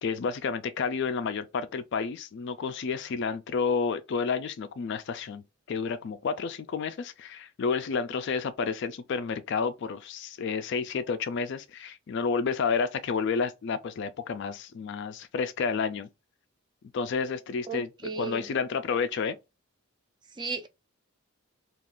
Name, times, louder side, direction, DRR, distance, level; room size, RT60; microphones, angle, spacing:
voice 1, 0.0-5.4 5.7-16.1 16.9-17.9 18.2-19.4, left 5 dB, 55° left, 0.3 m, -30 dB
voice 2, 17.7-18.5 20.4-20.7, right 4 dB, 20° right, 0.4 m, -35 dB
2.4 x 2.4 x 3.5 m
head